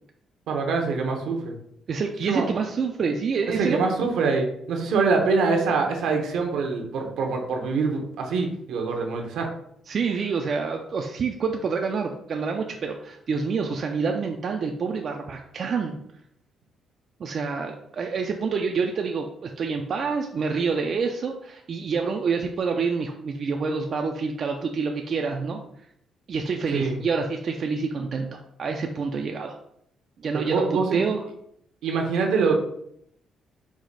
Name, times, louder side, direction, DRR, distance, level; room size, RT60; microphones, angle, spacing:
voice 1, 0.5-1.5 2.3-2.4 3.6-9.5 26.7-27.0 30.3-31.0 31.8-32.5, right 4 dB, 80° right, 2 dB, 0.8 m, -24 dB
voice 2, 1.9-3.9 9.9-16.0 17.2-25.6 26.3-29.6 30.2-31.2, right 5 dB, 55° right, 3 dB, 0.4 m, -27 dB
4.7 x 2.1 x 4.0 m, 0.72 s
cardioid pair, 90°, 0 cm